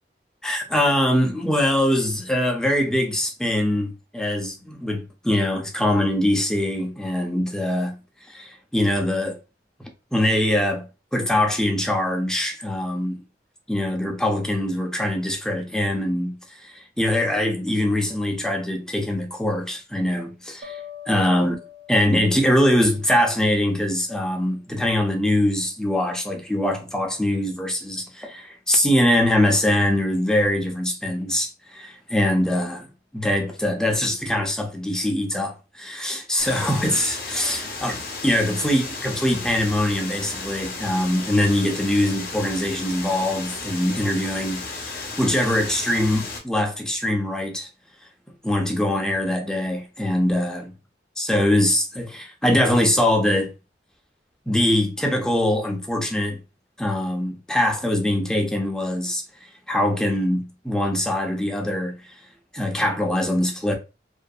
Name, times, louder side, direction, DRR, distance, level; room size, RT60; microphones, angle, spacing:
voice 1, 0.4-9.4 10.1-10.9 11.1-13.2 13.7-20.8 21.1-21.6 21.9-32.9 33.1-47.7 48.4-50.7 51.2-53.5 54.5-56.4 56.8-59.2 59.7-62.2 62.5-63.7, left 1 dB, 5° left, 0.4 m, -23 dB
sound 1, 20.6-23.7, left 8 dB, 55° right, 0.5 m, -43 dB
sound 2, 36.4-46.4, left 3 dB, 55° left, 0.7 m, -34 dB
2.6 x 2.5 x 2.2 m
head